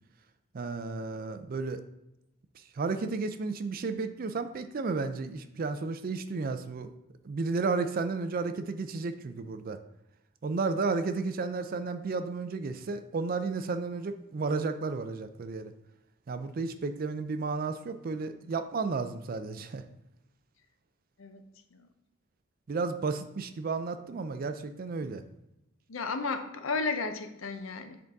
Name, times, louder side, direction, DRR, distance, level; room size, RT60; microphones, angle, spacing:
voice 1, 0.5-1.8 2.7-6.9 7.2-9.8 10.4-15.7 16.3-19.8 22.7-25.2, right 4 dB, 40° right, 10 dB, 0.4 m, -32 dB
voice 2, 25.9-28.0, left 4 dB, 65° left, 8 dB, 0.6 m, -33 dB
7.6 x 3.9 x 3.5 m, 0.87 s
head